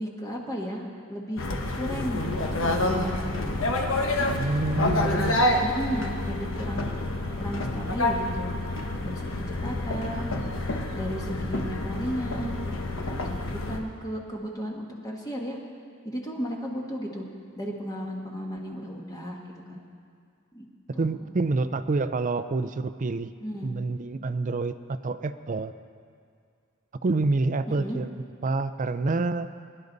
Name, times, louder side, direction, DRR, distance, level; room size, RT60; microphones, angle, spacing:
voice 1, 0.0-1.4 1.7-2.3 2.8-3.5 5.0-5.3 5.6-6.9 7.4-8.6 9.0-9.3 9.6-10.3 10.9-12.5 13.0-15.6 16.0-17.2 17.6-19.4 19.7-19.8 20.5-20.7 21.1-21.3 23.4-23.7 27.7-28.0, equal, 20° left, -1 dB, 1.4 m, -34 dB
sound 1, 1.4-13.8, left 2 dB, 70° left, 1.3 m, -28 dB
voice 2, 4.3-5.4 21.0-23.3 23.6-25.7 27.0-28.1 28.4-29.5, right 3 dB, 40° right, 12 dB, 0.5 m, -27 dB
22.0 x 11.0 x 4.0 m, 2.2 s
head